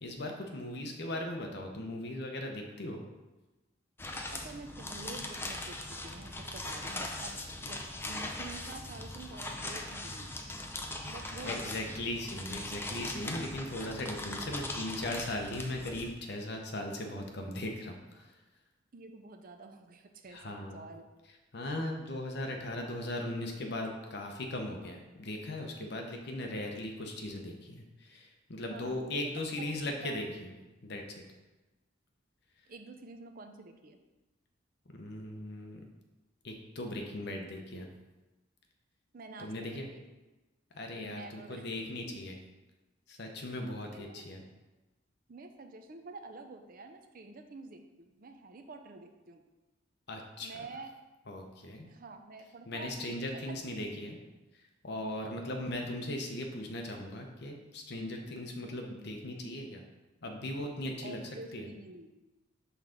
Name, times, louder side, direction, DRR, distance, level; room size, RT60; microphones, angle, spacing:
voice 1, 0.0-3.0 11.4-18.2 20.3-20.9 21.5-30.5 30.8-31.2 34.9-35.8 36.4-37.9 39.4-39.9 40.7-42.4 43.1-44.4 50.1-50.5 51.3-51.9 52.7-54.2 54.8-59.8 60.2-61.2 61.5-61.7, left 1 dB, 55° left, 2 dB, 0.9 m, -38 dB
sound 1, 4.0-16.1, left 2 dB, 10° left, 0.5 m, -40 dB
voice 2, 4.3-10.3 11.0-11.9 18.9-21.1 28.6-30.2 32.7-34.0 39.1-40.0 41.0-41.7 42.1-42.2 43.9-44.3 45.3-49.4 50.4-50.9 51.8-52.9 53.3-54.0 55.2-55.5 61.0-62.1, right 3 dB, 45° right, 5 dB, 0.5 m, -48 dB
5.7 x 3.8 x 5.8 m, 1.1 s
head